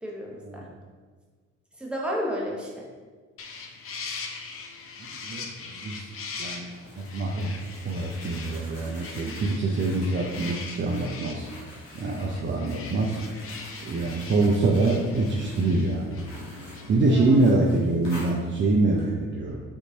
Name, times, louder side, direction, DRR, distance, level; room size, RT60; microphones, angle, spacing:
voice 1, 0.0-0.7 1.8-2.9 17.1-17.5, equal, 5° right, -3 dB, 1.2 m, -32 dB
sound 1, 3.4-17.4, left 4 dB, 40° left, 0.6 m, -41 dB
voice 2, 5.2-6.1 6.4-7.5 7.8-11.5 12.0-13.2 13.8-16.2 16.9-19.6, right 2 dB, 35° right, -2 dB, 0.6 m, -25 dB
sound 2, 6.7-19.1, equal, 90° left, 1.1 m, -47 dB
5.4 x 3.0 x 2.8 m, 1.5 s
hypercardioid pair, 50°, 36 cm